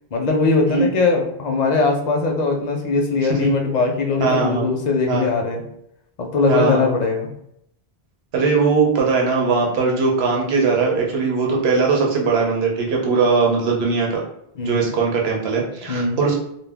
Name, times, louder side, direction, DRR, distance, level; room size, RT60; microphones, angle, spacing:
voice 1, 0.1-5.6 6.2-7.3 14.5-14.9 15.9-16.2, left 3 dB, 55° left, 2 dB, 0.5 m, -20 dB
voice 2, 4.2-4.7 5.0-5.3 6.5-6.9 8.3-14.2 14.6-16.4, right 4 dB, 80° right, -1 dB, 0.9 m, -20 dB
2.2 x 2.1 x 3.3 m, 0.74 s
omnidirectional pair, 1.1 m